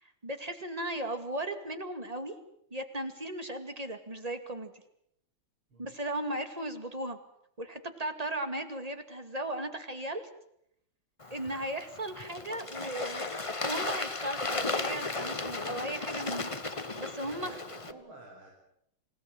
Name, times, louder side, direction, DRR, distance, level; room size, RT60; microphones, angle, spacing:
voice 1, 0.0-2.3 2.7-4.7 5.8-7.2 7.6-10.3 11.3-13.2 13.6-16.5 17.0-17.5, right 1 dB, 20° right, 8 dB, 2.3 m, -36 dB
Bird / Water, 11.2-17.9, left 3 dB, 20° left, 1.1 m, -35 dB
voice 2, 17.2-18.5, right 2 dB, 75° right, 0 dB, 6.4 m, -51 dB
27.0 x 17.5 x 9.1 m, 0.74 s
omnidirectional pair, 2.3 m